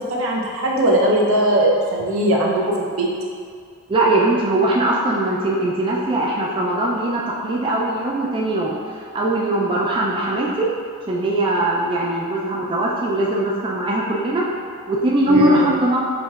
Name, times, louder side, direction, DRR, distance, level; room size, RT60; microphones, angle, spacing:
voice 1, 0.1-3.1 15.3-15.7, right 1 dB, 70° right, -3 dB, 0.7 m, -19 dB
voice 2, 3.9-10.7 11.1-14.5 14.9-16.0, right 1 dB, 25° right, -4 dB, 0.3 m, -20 dB
6.0 x 3.1 x 2.4 m, 2.2 s
head